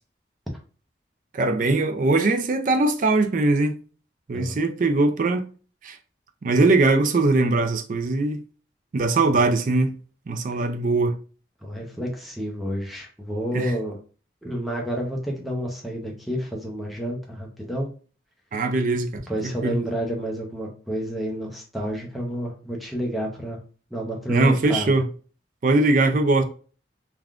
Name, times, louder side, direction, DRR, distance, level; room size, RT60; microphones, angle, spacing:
voice 1, 1.3-3.7 4.3-5.5 5.8-6.0 6.4-8.4 8.9-9.9 10.3-11.2 13.5-13.8 18.5-19.8 24.3-25.1 25.6-26.4, right 2 dB, 45° right, 0.4 m, -21 dB
voice 2, 11.6-14.0 14.4-17.9 19.3-23.6 23.9-24.9, equal, ahead, 0.6 m, -30 dB
3.4 x 2.3 x 2.4 m
head